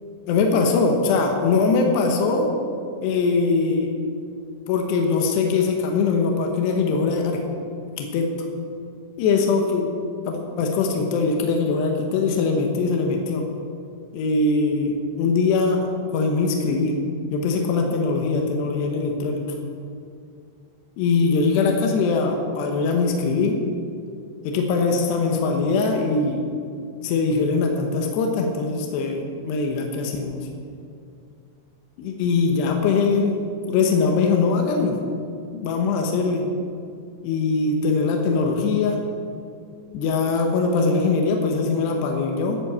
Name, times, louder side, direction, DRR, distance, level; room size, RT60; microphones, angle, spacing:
voice 1, 0.3-2.5 3.0-3.9 4.7-7.4 8.0-8.3 9.2-9.9 10.3-13.4 14.1-17.0 17.3-19.5 21.0-23.6 24.4-26.4 27.0-30.4 32.0-35.0 35.5-36.5 37.2-39.0 39.9-42.6, left 4 dB, 75° left, 2 dB, 2.7 m, -22 dB
12.0 x 8.6 x 7.4 m, 2.4 s
omnidirectional pair, 5.9 m